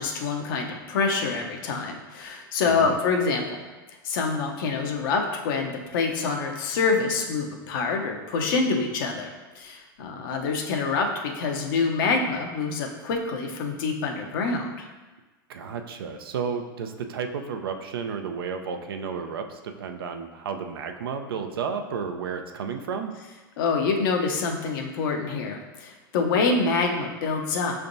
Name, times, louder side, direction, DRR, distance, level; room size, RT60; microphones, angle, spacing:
voice 1, 0.0-3.7 4.0-14.9 23.6-27.8, left 4 dB, 65° left, 2 dB, 0.8 m, -26 dB
voice 2, 15.5-23.1, right 6 dB, 85° right, 5 dB, 0.5 m, -32 dB
5.7 x 3.3 x 2.6 m, 1.2 s
hypercardioid pair, 105°, 12 cm